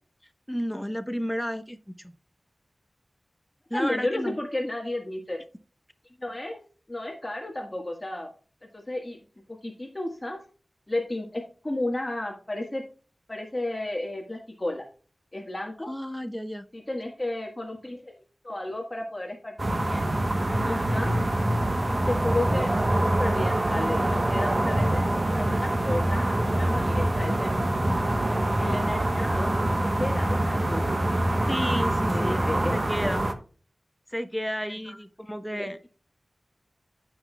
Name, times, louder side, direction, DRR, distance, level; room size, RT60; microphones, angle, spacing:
voice 1, 0.5-2.1 3.7-4.4 15.9-16.7 31.5-32.4 32.7-33.3 34.1-35.8, equal, 5° left, 9 dB, 0.9 m, -32 dB
voice 2, 3.7-5.4 6.2-6.6 6.9-8.3 8.7-9.2 9.6-10.4 10.9-12.8 13.3-14.8 15.3-15.9 16.7-18.2 18.4-20.1 20.6-21.2 21.9-22.7 23.0-27.5 28.6-29.5 29.8-30.9 32.1-32.7 34.8-34.9 35.5-35.7, left 1 dB, 30° left, 1 dB, 1.5 m, -32 dB
sound 1, 19.6-33.3, right 1 dB, 40° right, 1.0 m, -25 dB
15.0 x 5.9 x 2.3 m, 0.39 s
wide cardioid pair, 70°, 0 cm